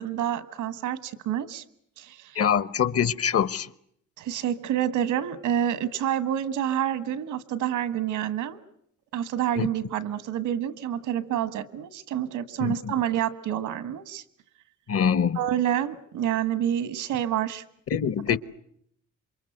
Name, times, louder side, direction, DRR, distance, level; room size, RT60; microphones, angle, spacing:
voice 1, 0.0-1.6 2.0-2.4 4.2-8.6 9.1-14.2 15.3-17.6 18.2-18.4, right 10 dB, 85° right, 1.7 m, -28 dB
voice 2, 2.4-3.7 9.6-9.7 12.6-12.9 14.9-15.4 17.9-18.4, left 8 dB, 50° left, 1.0 m, -24 dB
28.0 x 24.0 x 7.9 m
cardioid pair, 90°, 30 cm